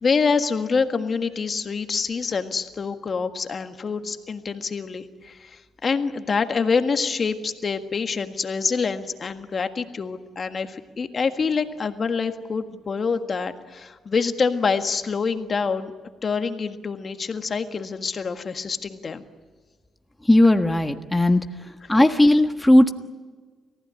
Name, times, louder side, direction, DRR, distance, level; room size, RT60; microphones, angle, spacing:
voice 1, 0.0-15.9 16.2-19.2, left 5 dB, 45° left, 7 dB, 1.6 m, -26 dB
voice 2, 20.3-21.4 21.9-22.9, left 1 dB, 10° left, 6 dB, 1.5 m, -16 dB
29.5 x 15.5 x 9.7 m, 1.4 s
cardioid pair, 70°, 0 cm